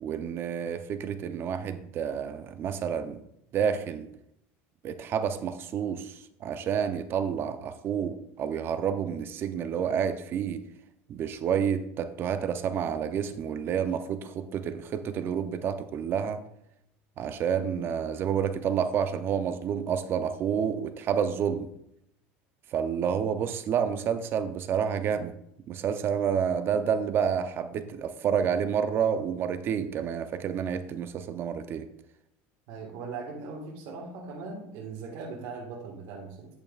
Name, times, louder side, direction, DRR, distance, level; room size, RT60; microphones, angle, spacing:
voice 1, 0.0-3.2 3.5-4.1 4.8-10.6 11.1-16.4 17.2-21.7 22.7-25.3 25.7-31.9, right 7 dB, 40° right, 10 dB, 0.5 m, -29 dB
voice 2, 32.7-36.5, right 4 dB, 65° right, -1 dB, 1.6 m, -39 dB
9.2 x 8.6 x 2.4 m, 0.76 s
cardioid pair, 140°, 6 cm